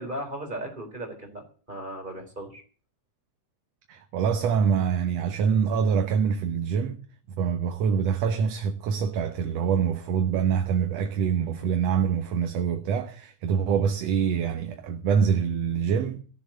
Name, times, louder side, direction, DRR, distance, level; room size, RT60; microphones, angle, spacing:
voice 1, 0.0-1.4 1.7-2.6, right 1 dB, 15° right, 3.8 m, -36 dB
voice 2, 3.9-7.0 7.4-16.2, right 7 dB, 65° right, 2.1 m, -25 dB
15.5 x 7.1 x 9.1 m
omnidirectional pair, 3.3 m